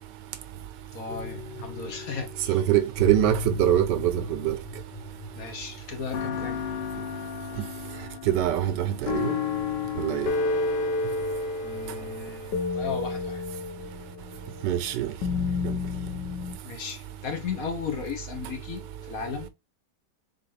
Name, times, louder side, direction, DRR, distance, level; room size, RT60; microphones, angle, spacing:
voice 1, 0.9-2.6 5.3-6.6 7.5-7.7 11.6-13.4 16.6-19.5, left 5 dB, 55° left, 1.4 m, -36 dB
sound 1, 1.1-2.3 3.0-5.6 6.1-16.6, left 4 dB, 80° left, 1.5 m, -32 dB
voice 2, 2.5-4.6 7.6-7.7 8.3-9.4 10.0-10.3 14.6-15.1 15.6-15.7, right 12 dB, 85° right, 1.3 m, -24 dB
4.1 x 3.9 x 3.3 m
omnidirectional pair, 1.9 m